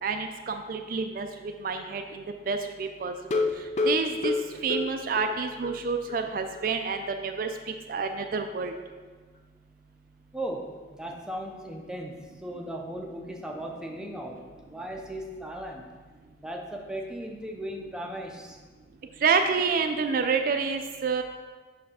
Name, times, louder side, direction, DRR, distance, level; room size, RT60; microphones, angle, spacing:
voice 1, 0.0-3.4 3.9-4.3 4.6-8.7 19.2-21.2, right 5 dB, 50° right, 6 dB, 0.4 m, -28 dB
sound 1, 3.2-5.8 6.1-6.2 6.6-6.7 7.0-7.1, left 3 dB, 40° left, 0.5 m, -29 dB
voice 2, 10.3-15.8 16.4-18.6, right 1 dB, 5° right, 1 dB, 0.6 m, -37 dB
6.3 x 3.3 x 5.5 m, 1.4 s
head